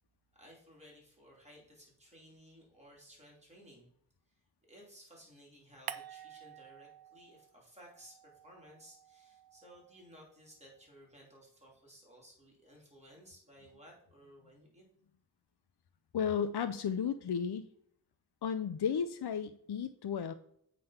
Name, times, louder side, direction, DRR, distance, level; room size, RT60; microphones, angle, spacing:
voice 1, 0.3-3.9 4.7-14.9, equal, 15° right, -3 dB, 2.9 m, -58 dB
sound 1, 5.9-7.6 7.9-10.3, right 8 dB, 65° right, 0.5 m, -49 dB
voice 2, 16.1-17.7 18.4-20.3, left 7 dB, 70° left, 10 dB, 0.5 m, -34 dB
7.8 x 3.8 x 5.7 m, 0.70 s
wide cardioid pair, 60°, 40 cm